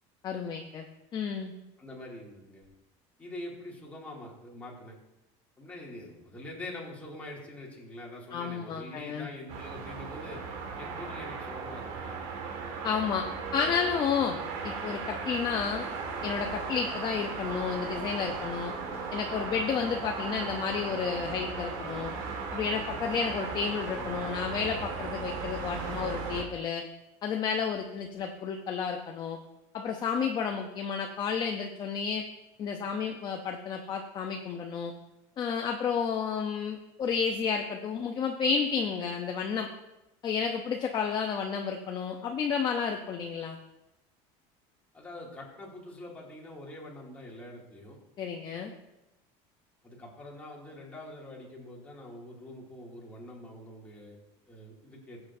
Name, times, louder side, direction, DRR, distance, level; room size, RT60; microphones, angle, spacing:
voice 1, 0.2-0.9 1.1-1.5 8.3-9.3 12.8-13.3 13.5-15.9 16.2-18.7 19.1-22.1 22.5-26.8 27.2-29.4 29.7-32.2 32.6-34.9 35.4-39.7 40.2-43.6 48.2-48.7, left 6 dB, 30° left, 3 dB, 0.7 m, -31 dB
voice 2, 1.8-2.6 3.2-5.0 5.6-10.4 10.8-12.2 14.1-14.3 44.9-48.0 49.8-54.2 54.5-55.2, left 1 dB, 10° left, -4 dB, 2.5 m, -44 dB
sound 1, 9.5-26.4, right 4 dB, 75° right, 2.0 m, -37 dB
18.0 x 8.0 x 2.7 m, 0.93 s
cardioid pair, 155°, 14 cm